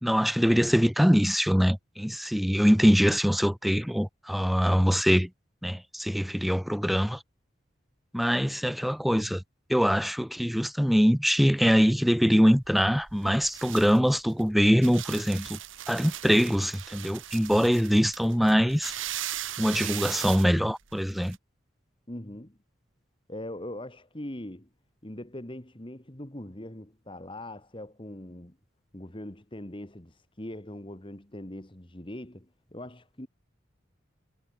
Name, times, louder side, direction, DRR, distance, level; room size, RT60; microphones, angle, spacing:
voice 1, 0.0-5.3 5.6-7.2 8.1-9.4 9.7-15.6 15.9-18.9 19.6-21.4, equal, ahead, 0.3 m, -23 dB
Hitting Dried Flowers, 12.5-21.4, right 12 dB, 85° right, 1.5 m, -39 dB
voice 2, 22.1-22.6 23.3-24.7 25.0-28.6 28.9-33.3, left 1 dB, 25° left, 1.8 m, -41 dB
head